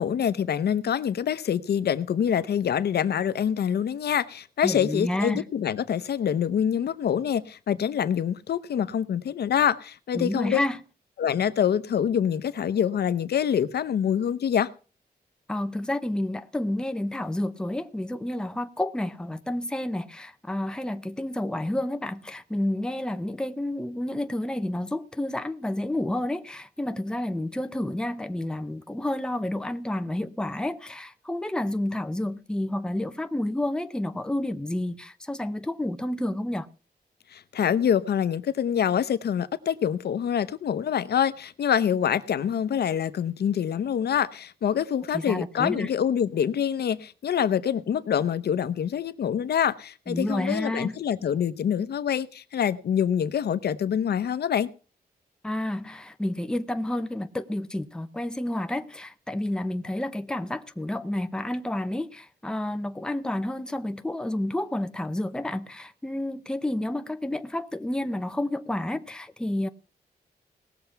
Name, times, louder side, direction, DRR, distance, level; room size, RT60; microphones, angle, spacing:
voice 1, 0.0-10.6 11.2-14.7 37.3-54.7, left 8 dB, 80° left, 0.8 m, -25 dB
voice 2, 4.6-5.5 10.1-10.8 15.5-36.7 45.1-45.9 50.1-51.0 55.4-69.7, left 1 dB, 5° left, 0.7 m, -30 dB
18.5 x 6.8 x 5.8 m
wide cardioid pair, 160°, 17 cm